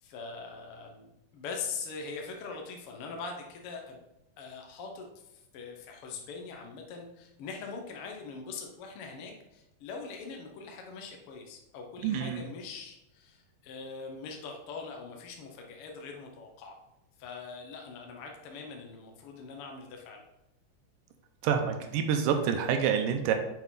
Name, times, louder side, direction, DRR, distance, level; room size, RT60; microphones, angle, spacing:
voice 1, 0.0-4.0 4.4-5.1 5.5-16.8 17.2-20.2, left 4 dB, 70° left, 2 dB, 1.4 m, -42 dB
voice 2, 12.0-12.4 21.4-23.3, right 7 dB, 85° right, 6 dB, 2.4 m, -27 dB
6.9 x 6.0 x 4.0 m, 0.90 s
omnidirectional pair, 3.8 m